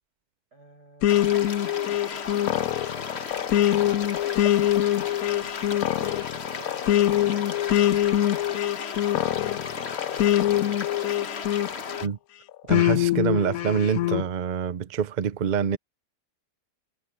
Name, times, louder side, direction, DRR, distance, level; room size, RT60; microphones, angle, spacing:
voice 1, 0.5-4.0 4.5-8.4 8.9-11.3, right 3 dB, 80° right, 8.2 m, -50 dB
sound 1, 1.0-12.1 12.7-14.2, left 13 dB, 70° left, 1.0 m, -24 dB
sound 2, 1.1-12.1, left 5 dB, 40° left, 1.4 m, -35 dB
voice 2, 12.7-15.8, right 7 dB, 65° right, 0.4 m, -26 dB
omnidirectional pair, 1.7 m